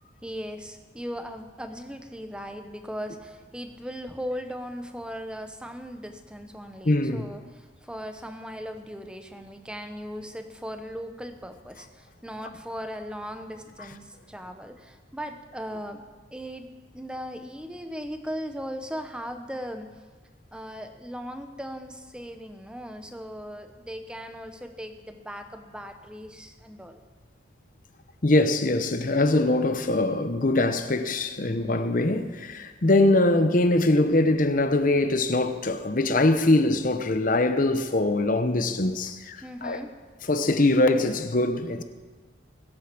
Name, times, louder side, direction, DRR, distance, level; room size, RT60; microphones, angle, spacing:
voice 1, 0.2-16.0 16.3-16.7 16.9-20.0 20.5-27.0 39.4-39.9, equal, 5° right, 0.9 m, -38 dB
voice 2, 6.8-7.3 28.2-39.8 40.3-41.8, left 2 dB, 45° left, 0.9 m, -22 dB
20.5 x 8.5 x 6.1 m
head